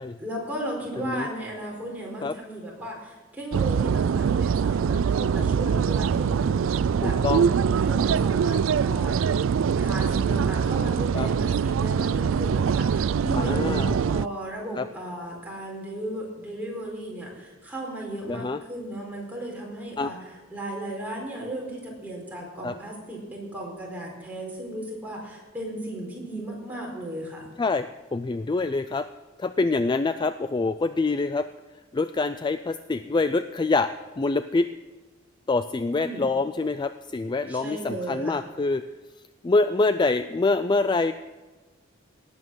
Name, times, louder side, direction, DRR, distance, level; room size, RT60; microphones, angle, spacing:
voice 1, 0.2-7.2 7.7-9.2 9.7-27.5 35.9-36.3 37.5-38.4, right 1 dB, 10° right, -2 dB, 4.4 m, -35 dB
voice 2, 0.9-1.3 2.2-2.3 7.0-7.5 11.1-11.3 13.4-13.9 14.8-14.9 18.3-18.6 20.0-20.1 22.6-22.7 27.6-29.1 29.4-31.5 31.9-34.7 35.5-38.8 39.4-41.1, left 3 dB, 20° left, 11 dB, 0.3 m, -25 dB
sound 1, 3.5-14.3, right 6 dB, 70° right, 0.3 m, -23 dB
18.0 x 8.6 x 6.3 m, 1.3 s
head